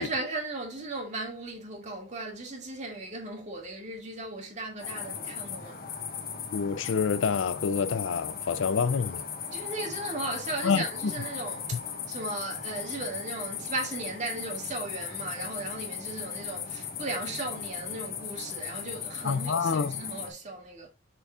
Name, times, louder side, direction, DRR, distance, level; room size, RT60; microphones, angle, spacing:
voice 1, 0.0-5.8 9.5-11.8 12.1-20.9, right 2 dB, 35° right, 2.3 m, -36 dB
sound 1, 4.8-20.3, left 7 dB, 50° left, 1.4 m, -37 dB
voice 2, 6.5-9.2 10.6-11.1 19.2-20.0, left 5 dB, 70° left, 0.4 m, -27 dB
6.9 x 6.8 x 2.4 m
head